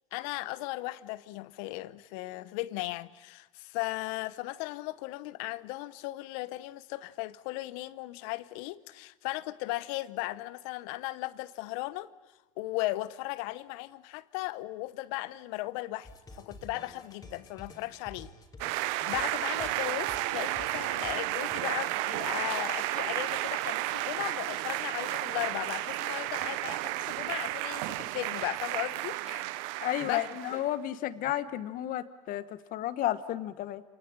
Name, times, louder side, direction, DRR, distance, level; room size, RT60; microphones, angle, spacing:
voice 1, 0.1-12.1 12.6-16.1 16.4-18.3 18.6-29.5 30.0-30.2 30.5-30.6, left 19 dB, 70° left, 0.9 m, -37 dB
sound 1, 16.0-21.5, left 2 dB, 20° left, 3.3 m, -51 dB
sound 2, 18.6-30.7, right 17 dB, 70° right, 0.8 m, -32 dB
voice 2, 29.8-33.8, left 13 dB, 55° left, 1.3 m, -32 dB
27.5 x 18.5 x 8.9 m
hypercardioid pair, 85°, 17 cm